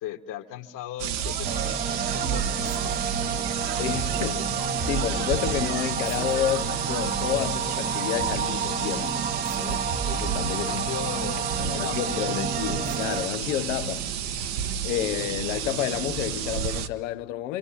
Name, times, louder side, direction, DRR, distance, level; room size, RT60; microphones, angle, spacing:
voice 1, 0.0-2.7 3.0-3.1 10.7-12.0, left 12 dB, 55° left, 2.0 m, -37 dB
sound 1, 1.0-16.9, right 8 dB, 60° right, 1.4 m, -31 dB
sound 2, 1.4-13.3, right 5 dB, 20° right, 1.1 m, -30 dB
voice 2, 3.8-9.3 9.5-10.9 11.6-14.6 14.8-17.6, left 13 dB, 75° left, 1.1 m, -30 dB
27.0 x 25.0 x 7.5 m
hypercardioid pair, 85°, 39 cm